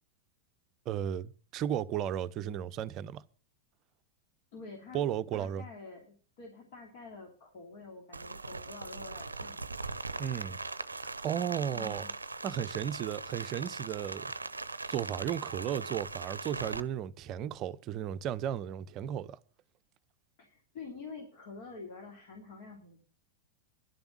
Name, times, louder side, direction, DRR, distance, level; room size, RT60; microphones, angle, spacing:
voice 1, 0.9-3.2 4.9-5.6 10.2-10.6 11.0-12.0 12.4-14.3 14.9-19.4, right 10 dB, 35° right, 0.6 m, -34 dB
voice 2, 4.5-5.1 5.3-9.7 11.7-12.1 20.4-23.0, left 4 dB, 50° left, 3.3 m, -47 dB
Rain, 8.1-16.8, right 3 dB, 80° right, 0.6 m, -40 dB
11.0 x 7.0 x 8.3 m
figure-of-eight pair, 90°, 0 cm